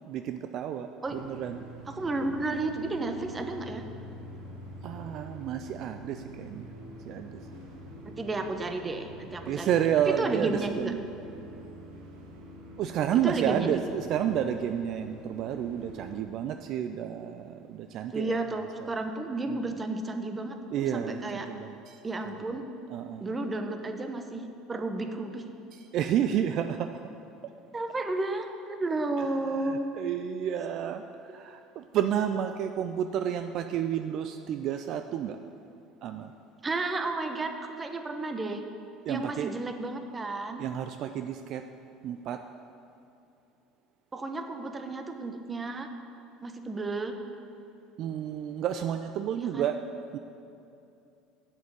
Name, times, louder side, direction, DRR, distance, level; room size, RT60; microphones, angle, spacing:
voice 1, 0.1-1.6 4.8-6.7 7.1-7.3 9.5-11.0 12.8-18.4 19.5-19.8 20.7-21.9 22.5-22.6 22.9-23.2 25.9-26.9 29.6-31.0 31.3-35.4 36.0-36.3 39.1-39.5 40.6-41.6 42.0-42.4 48.0-49.8 50.1-50.2, right 9 dB, 55° right, 8 dB, 0.4 m, -30 dB
sound 1, 1.0-16.2, right 1 dB, 75° right, 2.0 m, -45 dB
voice 2, 1.9-3.8 8.0-10.9 13.2-13.8 18.1-21.5 22.0-22.6 23.2-24.4 24.7-25.4 27.7-29.9 36.6-38.6 39.1-40.6 43.0-43.1 44.1-45.9 46.4-47.1 49.4-49.7, right 2 dB, 25° right, 6 dB, 1.1 m, -32 dB
8.0 x 7.4 x 7.9 m, 2.7 s
hypercardioid pair, 75°, 0 cm